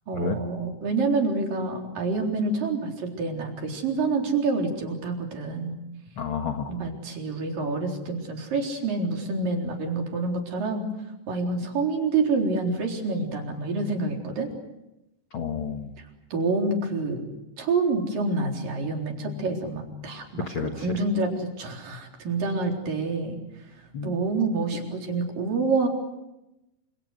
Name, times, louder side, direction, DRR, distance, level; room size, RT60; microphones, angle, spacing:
voice 1, 0.1-5.7 6.7-10.8 11.3-14.5 16.3-17.3 17.6-23.4 24.0-25.9, right 3 dB, 60° right, 1 dB, 5.6 m, -27 dB
voice 2, 6.1-6.7 15.3-15.9 20.5-20.9 23.9-24.2, left 6 dB, 55° left, 5 dB, 1.5 m, -30 dB
28.5 x 27.5 x 6.5 m, 0.92 s
omnidirectional pair, 4.4 m